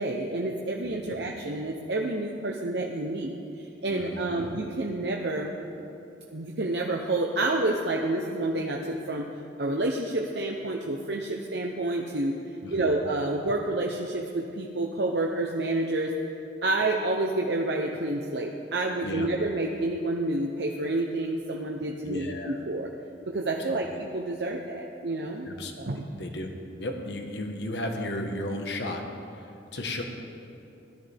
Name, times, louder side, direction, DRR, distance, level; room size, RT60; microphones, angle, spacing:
voice 1, 0.0-5.5 6.3-9.3 9.6-12.4 12.7-16.2 16.6-22.9 23.3-25.5 25.8-26.1, right 2 dB, 65° right, 0 dB, 0.8 m, -29 dB
voice 2, 0.8-1.2 3.9-4.5 12.6-12.9 19.0-19.3 22.0-22.6 23.7-23.9 25.4-25.7 26.2-26.5 26.8-29.0 29.4-30.0, left 1 dB, 70° left, 3 dB, 1.3 m, -34 dB
17.0 x 12.5 x 3.5 m, 2.7 s
head